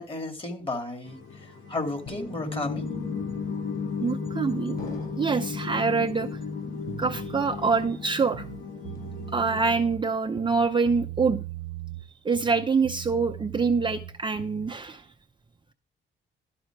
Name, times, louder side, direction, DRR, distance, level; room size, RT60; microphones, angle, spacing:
voice 1, 0.0-2.9, left 2 dB, 30° left, 5 dB, 2.4 m, -33 dB
sound 1, 1.0-9.7, left 5 dB, 75° left, 1.8 m, -34 dB
sound 2, 2.1-2.9 3.7-4.3 4.8-5.6 6.1-6.7 7.0-7.8 8.1-8.5 8.9-9.5, left 4 dB, 50° left, 4.3 m, -46 dB
voice 2, 4.0-4.8 5.2-6.4 7.0-8.4 9.3-11.4 12.2-15.1, right 4 dB, 25° right, 5 dB, 0.6 m, -25 dB
sound 3, 6.9-7.9 8.3-10.0 10.4-12.1 12.3-14.7, right 13 dB, 80° right, 0.5 m, -40 dB
12.0 x 4.3 x 5.9 m, 0.34 s
cardioid pair, 90°, 20 cm